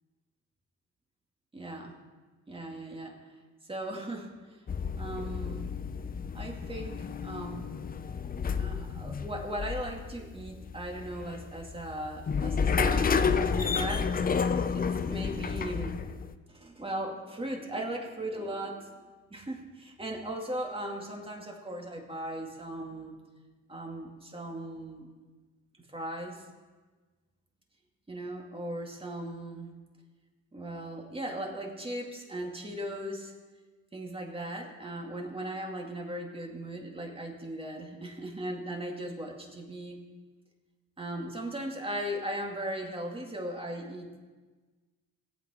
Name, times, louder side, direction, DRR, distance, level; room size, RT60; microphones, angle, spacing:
voice 1, 1.5-2.0 2.5-3.2 3.7-4.6 5.0-5.7 6.3-7.7 8.6-14.2 14.7-16.1 16.5-18.9 19.3-23.1 23.7-25.1 25.9-26.4 28.1-29.7 30.5-33.3 33.9-40.0 41.0-44.2, right 1 dB, 20° right, 1 dB, 2.3 m, -38 dB
sound 1, 4.7-16.3, left 5 dB, 30° left, 0.6 m, -31 dB
17.0 x 8.5 x 4.3 m, 1.4 s
cardioid pair, 90°, 30 cm